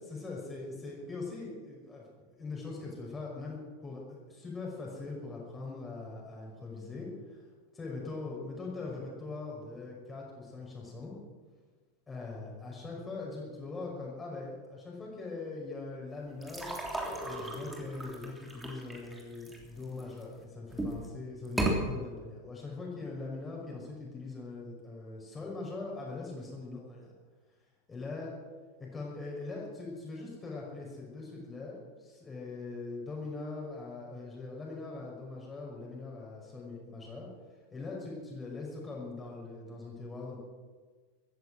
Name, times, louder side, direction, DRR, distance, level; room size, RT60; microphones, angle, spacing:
voice 1, 0.0-2.1 2.4-7.4 7.7-11.1 12.1-16.7 17.2-27.1 27.9-28.3 28.8-37.3 37.7-40.4, left 3 dB, 15° left, -2 dB, 5.7 m, -41 dB
sound 1, 16.4-20.2 20.7-21.1 21.4-21.8, right 2 dB, 5° right, 3.2 m, -35 dB
16.0 x 14.5 x 6.2 m, 1.4 s
figure-of-eight pair, 90°, 0 cm